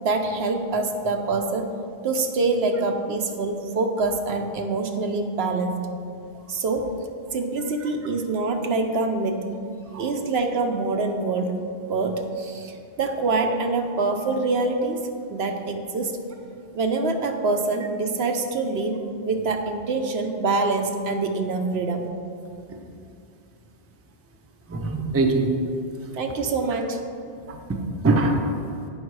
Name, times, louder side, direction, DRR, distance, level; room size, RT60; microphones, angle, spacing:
voice 1, 0.0-1.7 2.0-5.9 6.5-6.9 7.3-9.5 10.0-11.5 11.8-16.2 16.7-22.1 26.1-27.0, right 3 dB, 70° right, 4 dB, 0.9 m, -25 dB
voice 2, 24.7-25.5 27.5-28.5, right 2 dB, 20° right, 2 dB, 0.5 m, -23 dB
8.2 x 5.5 x 4.7 m, 2.5 s
omnidirectional pair, 1.2 m